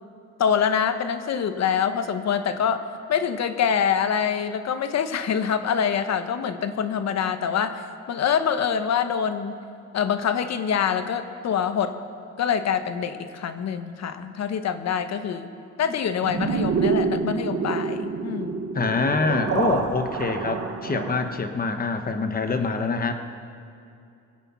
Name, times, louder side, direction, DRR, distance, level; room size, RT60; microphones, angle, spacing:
voice 1, 0.4-7.8 8.1-9.5 9.9-12.0 12.4-15.5 15.8-18.6, left 7 dB, 60° left, 10 dB, 1.1 m, -25 dB
sound 1, 16.2-21.4, right 5 dB, 50° right, 1.4 m, -27 dB
voice 2, 18.7-23.1, left 4 dB, 30° left, 7 dB, 1.2 m, -25 dB
23.5 x 8.2 x 5.7 m, 2.5 s
cardioid pair, 90°, 30 cm